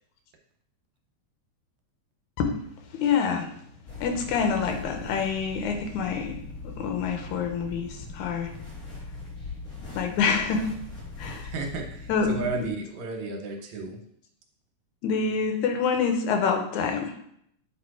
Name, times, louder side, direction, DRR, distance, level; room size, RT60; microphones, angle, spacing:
voice 1, 2.9-3.5 4.0-6.4 6.6-8.6 10.0-10.7 11.2-11.5 12.1-12.7 15.0-17.1, left 6 dB, 85° left, 4 dB, 2.3 m, -26 dB
sound 1, 3.9-12.7, left 3 dB, 35° left, 1.9 m, -41 dB
voice 2, 11.4-14.0, right 3 dB, 75° right, 3 dB, 2.2 m, -33 dB
8.3 x 3.0 x 4.7 m, 0.70 s
omnidirectional pair, 3.4 m